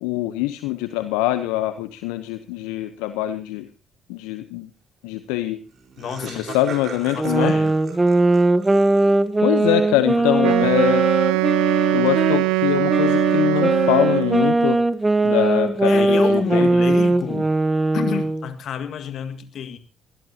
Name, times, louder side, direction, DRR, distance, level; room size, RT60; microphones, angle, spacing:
voice 1, 0.0-3.7 4.1-4.7 5.0-5.6 6.2-7.5 9.4-11.1 11.9-14.8 15.2-16.7, left 14 dB, 80° left, 10 dB, 0.8 m, -23 dB
Laughter, 5.4-5.5 5.7-9.4, right 6 dB, 55° right, 4.1 m, -39 dB
voice 2, 6.0-6.6 6.9-7.8 10.2-10.7 15.8-17.5 17.9-19.8, left 8 dB, 60° left, 9 dB, 1.8 m, -30 dB
sound 1, 7.2-12.4 12.9-18.5, right 2 dB, 20° right, 1.2 m, -20 dB
Wind instrument woodwind instrument, 10.4-14.6, right 19 dB, 80° right, 0.6 m, -21 dB
20.5 x 19.5 x 2.9 m, 0.39 s
hypercardioid pair, 50°, 0 cm